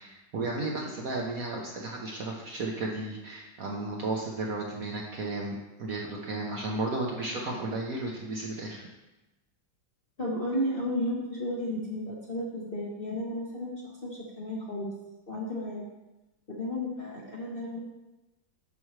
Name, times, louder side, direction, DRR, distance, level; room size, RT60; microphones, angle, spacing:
voice 1, 0.0-8.9, right 2 dB, 60° right, -1 dB, 1.0 m, -34 dB
voice 2, 10.2-14.9 15.3-15.8 16.5-17.8, left 1 dB, 40° left, -4 dB, 0.9 m, -33 dB
9.0 x 6.1 x 3.2 m, 1.0 s
omnidirectional pair, 2.2 m